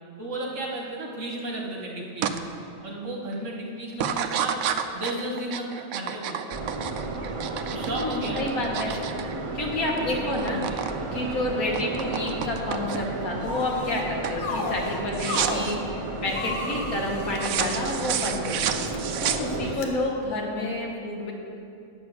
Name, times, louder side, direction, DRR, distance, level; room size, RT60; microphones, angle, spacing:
voice 1, 0.2-2.5 2.8-4.5 4.9-6.4 7.7-8.5 8.9-9.0 10.0-10.9 19.5-20.0, right 1 dB, 60° right, -1 dB, 1.7 m, -34 dB
sound 1, 2.2-2.4 2.8-3.3 3.9-10.0 10.2-11.0 11.3-13.2 13.7-14.0 14.2-14.5 15.1-15.7 17.4-19.9, right 9 dB, 80° right, 1.0 m, -30 dB
sound 2, 6.5-19.8, right 2 dB, 45° right, 0.4 m, -33 dB
voice 2, 7.9-8.9 9.5-10.6 11.1-18.6 19.2-21.3, left 1 dB, 90° left, -1 dB, 1.9 m, -29 dB
sound 3, 13.4-14.1 14.4-15.8 16.3-18.1 18.7-19.0 19.7-19.9, left 3 dB, 60° left, 1.2 m, -34 dB
9.5 x 6.3 x 7.0 m, 2.5 s
omnidirectional pair, 1.4 m